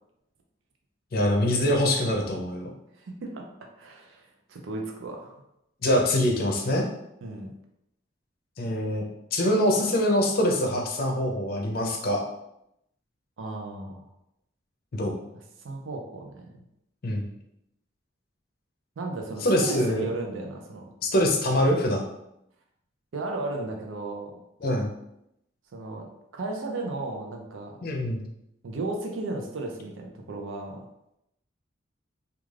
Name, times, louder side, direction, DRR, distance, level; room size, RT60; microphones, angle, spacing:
voice 1, 1.1-2.7 5.8-6.8 8.6-9.1 9.3-12.2 14.9-15.2 17.0-17.3 19.4-20.1 21.0-22.0 24.6-24.9 27.8-28.2, left 1 dB, 50° left, 1 dB, 0.5 m, -24 dB
voice 2, 3.0-3.5 3.8-4.2 4.5-5.4 7.2-7.5 13.4-14.0 15.6-16.5 19.0-20.9 23.1-24.4 25.7-26.1 26.3-27.7 28.6-30.8, right 2 dB, 85° right, 2 dB, 0.5 m, -34 dB
2.4 x 2.3 x 3.2 m, 0.81 s
head